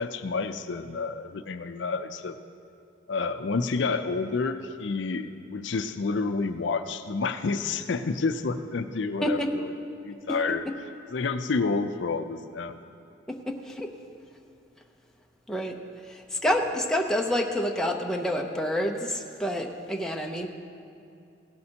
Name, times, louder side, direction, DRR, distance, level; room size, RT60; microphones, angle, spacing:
voice 1, 0.0-2.4 3.1-9.7 10.0-10.6 11.1-12.8, left 4 dB, 65° left, 9 dB, 0.5 m, -29 dB
voice 2, 9.2-9.5 13.3-13.9 15.5-15.8 16.1-20.5, equal, 5° left, 1 dB, 0.6 m, -28 dB
16.5 x 12.0 x 2.9 m, 2.6 s
head